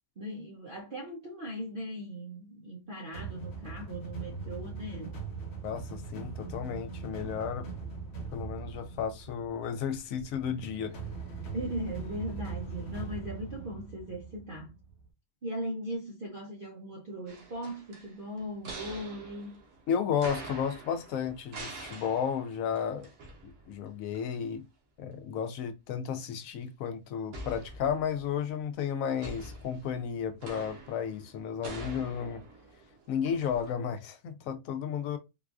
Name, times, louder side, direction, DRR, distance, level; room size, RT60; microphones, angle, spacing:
voice 1, 0.2-5.2 11.5-14.7 15.4-19.6, equal, 55° right, 0.6 m, -39 dB
sound 1, 3.1-15.0, right 4 dB, 45° left, 1.3 m, -41 dB
voice 2, 5.6-7.7 8.3-10.9 19.9-23.1 23.7-24.6 25.0-32.4 33.1-35.2, left 7 dB, 70° left, 0.9 m, -33 dB
sound 2, 17.3-23.9 24.1-24.3 27.3-28.4 29.2-33.7, right 2 dB, 70° right, 1.3 m, -45 dB
3.9 x 2.4 x 2.4 m
omnidirectional pair, 1.6 m